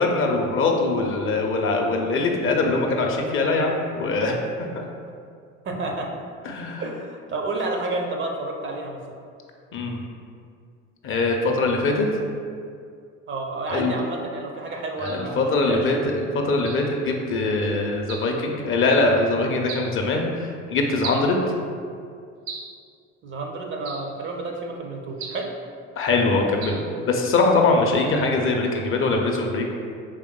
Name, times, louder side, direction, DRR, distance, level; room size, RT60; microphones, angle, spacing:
voice 1, 0.0-4.3 4.6-4.8 6.4-6.8 9.7-10.0 11.0-12.1 13.7-13.9 15.0-21.4 26.0-26.8 27.1-29.8, left 3 dB, 35° left, 1 dB, 0.5 m, -22 dB
voice 2, 5.6-6.2 6.8-9.2 13.3-15.9 23.2-25.5, right 2 dB, 30° right, 1 dB, 0.5 m, -30 dB
sound 1, 15.0-15.3 16.6-16.9 18.1-18.4 19.7-19.9 21.0-21.3 22.5-22.8 23.8-24.2 25.2-25.5 26.6-26.9, right 5 dB, 75° right, 0.7 m, -36 dB
4.9 x 3.5 x 2.2 m, 2.3 s
hypercardioid pair, 70°, 40 cm